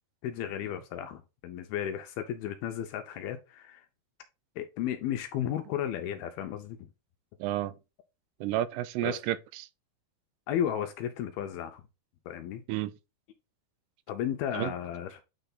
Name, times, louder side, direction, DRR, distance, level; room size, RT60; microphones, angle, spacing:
voice 1, 0.2-3.9 4.6-6.8 9.0-9.2 10.5-11.8 12.3-12.6 14.1-15.2, left 10 dB, 80° left, 2.3 m, -34 dB
voice 2, 7.4-7.7 8.4-9.7 12.7-12.9 14.5-14.7, right 14 dB, 85° right, 2.7 m, -31 dB
9.0 x 3.4 x 3.9 m
omnidirectional pair, 4.9 m